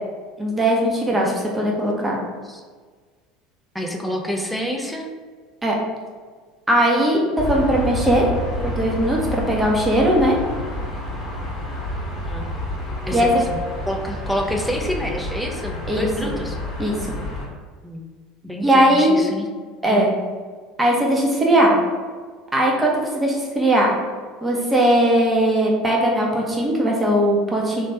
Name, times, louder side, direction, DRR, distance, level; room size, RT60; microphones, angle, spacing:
voice 1, 0.4-2.2 5.6-5.7 6.7-7.2 7.5-8.3 8.6-10.3 13.1-13.4 15.9-16.3 16.8-17.0 18.6-19.2 19.8-20.1 20.8-21.7 22.5-23.9 24.4-27.9, right 1 dB, 15° right, -2 dB, 0.9 m, -19 dB
voice 2, 1.1-1.8 2.5-2.6 3.7-5.1 12.3-12.5 13.1-13.6 13.9-16.6 17.8-18.1 18.4-19.5 19.9-20.1, equal, ahead, 1 dB, 0.6 m, -28 dB
sound 1, 7.4-17.5, left 1 dB, 30° left, 1.4 m, -29 dB
3.2 x 2.7 x 3.2 m, 1.5 s
hypercardioid pair, 70°, 0 cm